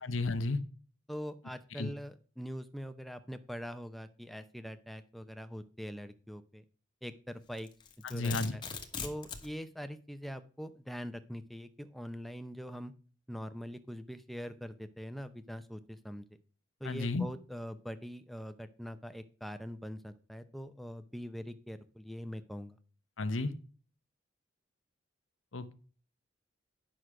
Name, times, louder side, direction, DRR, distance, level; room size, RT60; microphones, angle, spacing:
voice 1, 0.0-0.6 1.8-1.9 8.0-8.5 16.8-17.3 23.2-23.5 25.5-25.7, left 3 dB, 80° left, 12 dB, 1.0 m, -32 dB
voice 2, 1.1-6.6 7.0-7.7 8.1-8.6 9.0-12.9 13.3-16.2 16.8-22.8, equal, ahead, 10 dB, 0.6 m, -43 dB
Domestic sounds home sounds, 7.6-9.5, left 6 dB, 25° left, 1.2 m, -41 dB
10.0 x 6.2 x 4.9 m, 0.40 s
head